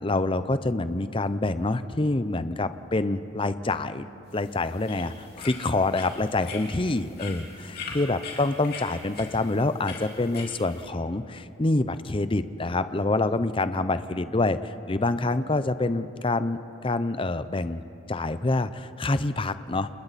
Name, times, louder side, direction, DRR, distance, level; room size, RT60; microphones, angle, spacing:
voice 1, 0.0-4.1 4.3-7.4 7.9-19.9, left 2 dB, 25° left, 12 dB, 0.6 m, -26 dB
sound 1, 4.3-10.8, left 4 dB, 50° left, 3.6 m, -42 dB
30.0 x 29.0 x 4.2 m, 2.9 s
head